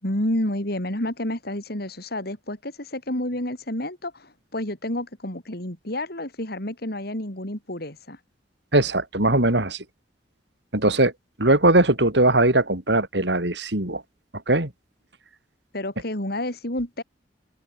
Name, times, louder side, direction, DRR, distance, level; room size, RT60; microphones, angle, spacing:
voice 1, 0.0-8.2 15.7-17.0, left 1 dB, 60° left, 5.4 m, -30 dB
voice 2, 8.7-9.8 10.7-11.1 11.4-14.0 14.5-14.7, right 2 dB, 70° right, 5.3 m, -20 dB
open air
head